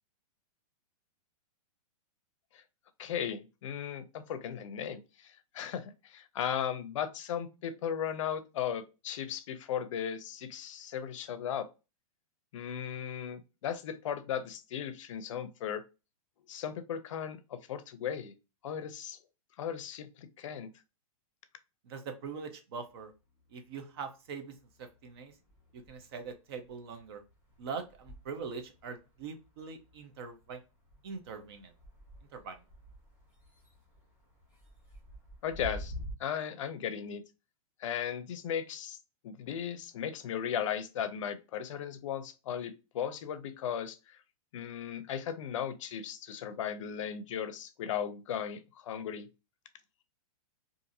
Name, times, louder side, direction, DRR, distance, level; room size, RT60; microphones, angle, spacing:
voice 1, 3.0-11.7 12.5-15.8 16.5-18.3 18.6-19.2 19.6-20.7 35.4-35.9 36.2-37.2 37.8-39.0 39.2-44.2 44.5-49.3, left 8 dB, 60° left, 0.5 m, -36 dB
voice 2, 21.8-23.1 23.5-25.3 25.7-27.2 27.6-30.6 31.0-31.7 32.3-32.6, right 5 dB, 45° right, 0.6 m, -42 dB
sound 1, 22.9-24.1 24.4-36.1, equal, 10° right, 1.0 m, -50 dB
2.6 x 2.5 x 2.6 m
hypercardioid pair, 165°, 18 cm